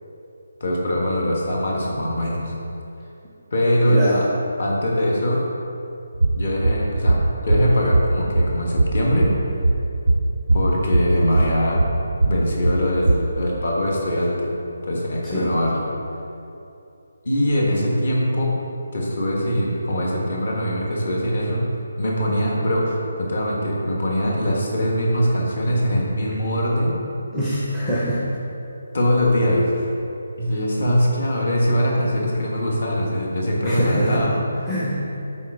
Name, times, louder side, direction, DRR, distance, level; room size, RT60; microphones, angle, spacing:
voice 1, 0.6-2.5 3.5-4.2 4.6-5.4 6.4-9.3 10.5-11.8 12.2-14.4 14.8-15.8 17.2-18.5 18.9-21.7 22.0-26.9 28.9-29.9 30.4-34.3, equal, 40° left, -3 dB, 1.4 m, -22 dB
voice 2, 3.9-4.2 15.3-15.5 27.3-28.2 33.6-34.2 34.7-35.0, equal, ahead, -9 dB, 0.6 m, -23 dB
sound 1, 6.1-13.2, right 2 dB, 80° right, 0.4 m, -21 dB
7.8 x 4.2 x 4.7 m, 2.8 s
hypercardioid pair, 180°, 0 cm